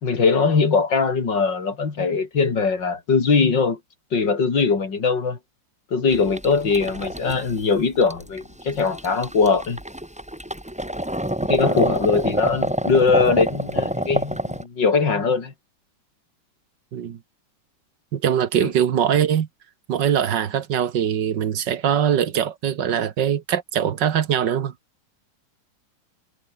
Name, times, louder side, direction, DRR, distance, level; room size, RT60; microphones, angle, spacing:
voice 1, 0.0-3.8 4.1-5.4 5.9-9.8 11.5-15.5 18.6-18.7, left 5 dB, 75° left, 3.7 m, -21 dB
sound 1, 6.1-14.6, right 1 dB, 5° right, 1.5 m, -26 dB
voice 2, 18.1-19.5 19.9-24.7, right 9 dB, 70° right, 1.9 m, -22 dB
omnidirectional pair, 2.0 m